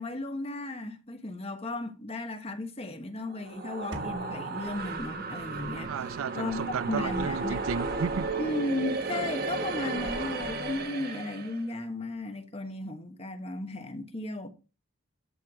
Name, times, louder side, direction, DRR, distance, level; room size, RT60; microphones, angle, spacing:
voice 1, 0.0-5.9 6.3-7.6 8.4-14.5, left 2 dB, 30° left, 1.3 m, -35 dB
sound 1, 3.3-11.6, right 3 dB, 45° right, 1.3 m, -34 dB
sound 2, 3.9-5.8, right 2 dB, 65° right, 2.1 m, -44 dB
voice 2, 5.9-8.3, right 6 dB, 90° right, 0.4 m, -33 dB
13.0 x 4.6 x 4.9 m
head